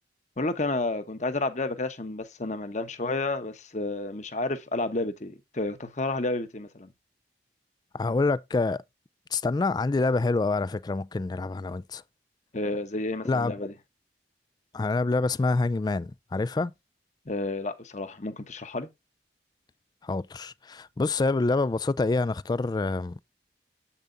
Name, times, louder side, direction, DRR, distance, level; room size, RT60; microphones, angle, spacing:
voice 1, 0.4-6.9 12.5-13.7 17.3-18.9, left 2 dB, 45° left, 1.1 m, -31 dB
voice 2, 7.9-8.8 9.3-12.0 13.2-13.5 14.7-16.7 20.0-23.2, left 3 dB, 25° left, 0.3 m, -26 dB
8.1 x 7.1 x 2.6 m
head